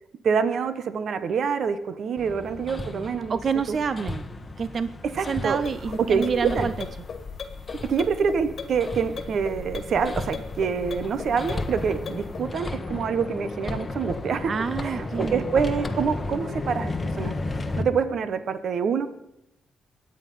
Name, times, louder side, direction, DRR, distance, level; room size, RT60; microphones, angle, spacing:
voice 1, 0.2-3.4 3.7-3.8 5.1-5.6 6.0-6.7 7.8-14.5 14.8-17.3 17.8-19.1, right 6 dB, 55° right, 12 dB, 1.1 m, -26 dB
Hammer, 2.2-17.8, left 2 dB, 20° left, 1.3 m, -34 dB
voice 2, 3.3-4.2 4.6-4.9 5.3-6.7 14.5-15.5, right 6 dB, 40° right, 14 dB, 0.6 m, -27 dB
sound 1, 5.6-12.5, left 5 dB, 40° left, 1.9 m, -38 dB
23.0 x 9.0 x 5.6 m, 0.79 s
cardioid pair, 135°, 0 cm